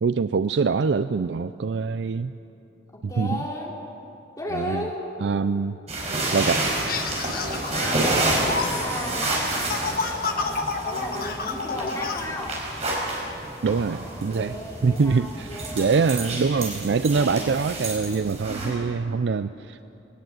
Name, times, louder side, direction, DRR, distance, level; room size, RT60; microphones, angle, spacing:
voice 1, 0.0-2.3 3.2-3.4 4.5-4.9 5.2-5.8 6.3-6.7 13.6-14.6 14.8-19.8, right 5 dB, 65° right, 12 dB, 0.4 m, -24 dB
voice 2, 2.9-3.7 4.4-5.1 7.7-8.1 8.8-9.8 10.2-12.6 14.3-16.4 17.0-17.5 18.5-18.9 19.2-19.3, left 1 dB, 20° left, -3 dB, 3.5 m, -34 dB
sound 1, 5.9-18.7, right 2 dB, 35° right, 5.2 m, -29 dB
sound 2, 6.8-12.2, left 4 dB, 55° left, 1.5 m, -30 dB
20.5 x 19.5 x 7.8 m, 2.9 s
head